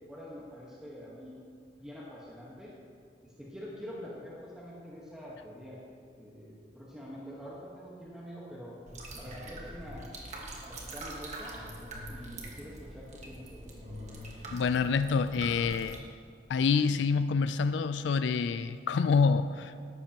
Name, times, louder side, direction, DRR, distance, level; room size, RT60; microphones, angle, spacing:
voice 1, 0.1-1.4 1.8-2.7 3.2-5.8 6.2-8.8 9.2-10.2 10.7-11.6 12.1-13.8, equal, 5° right, -7 dB, 1.3 m, -45 dB
sound 1, 8.9-16.0, right 1 dB, 40° right, 1.5 m, -43 dB
voice 2, 14.5-16.0 16.5-19.7, left 5 dB, 85° left, 12 dB, 0.3 m, -27 dB
13.5 x 11.0 x 2.9 m, 2.2 s
head